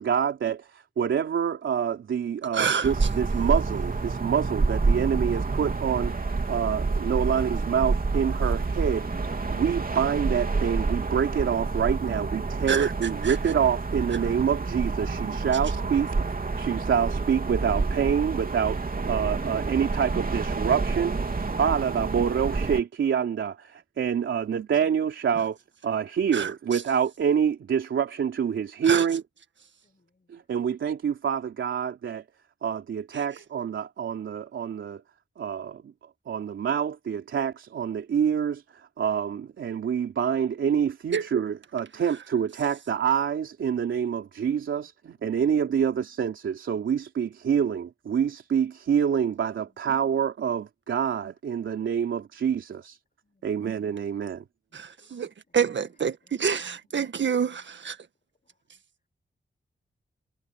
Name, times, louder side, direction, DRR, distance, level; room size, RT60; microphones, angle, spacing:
voice 1, 0.0-16.2 16.6-21.2 21.6-25.6 25.8-29.2 30.3-32.3 32.6-35.0 35.4-35.9 36.3-53.0 53.4-54.5 56.9-57.1, right 8 dB, 90° right, 3.3 m, -27 dB
voice 2, 2.5-2.9 12.7-12.9 26.3-26.5 28.9-29.0 41.1-41.2 54.7-57.9, right 7 dB, 70° right, 1.8 m, -27 dB
sound 1, 2.8-22.8, right 3 dB, 50° right, 3.5 m, -28 dB
voice 3, 29.8-30.4 53.2-53.5 55.0-55.1 56.2-56.4 56.7-56.8, left 3 dB, 45° left, 7.0 m, -69 dB
cardioid pair, 45°, 20 cm